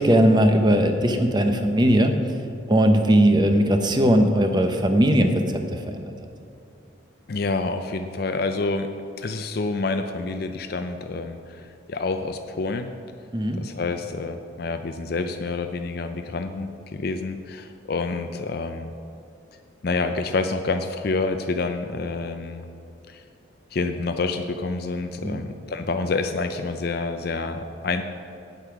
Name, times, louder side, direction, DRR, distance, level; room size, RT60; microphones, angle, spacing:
voice 1, 0.0-2.1 2.7-5.6 5.9-6.1 13.3-13.6 25.2-25.4, right 1 dB, 20° right, 6 dB, 0.7 m, -19 dB
voice 2, 7.3-8.9 9.2-12.9 13.6-18.9 19.8-22.6 23.1-23.2 23.7-28.0, left 3 dB, 50° left, 7 dB, 0.4 m, -28 dB
8.9 x 8.0 x 5.9 m, 2.6 s
head